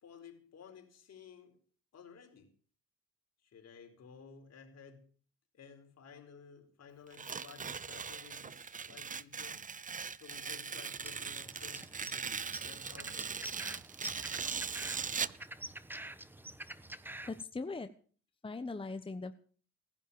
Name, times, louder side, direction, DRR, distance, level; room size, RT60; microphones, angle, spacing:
voice 1, 0.0-1.6 1.9-2.5 3.4-5.1 5.5-9.7 10.1-13.4, left 6 dB, 55° left, 4.5 m, -55 dB
Tearing, 7.1-15.4, right 6 dB, 25° right, 0.7 m, -40 dB
sound 1, 11.0-17.4, right 1 dB, 5° right, 1.1 m, -47 dB
voice 2, 17.3-17.9 18.4-19.3, left 3 dB, 15° left, 1.1 m, -40 dB
18.0 x 11.0 x 7.0 m
cardioid pair, 90°, 30 cm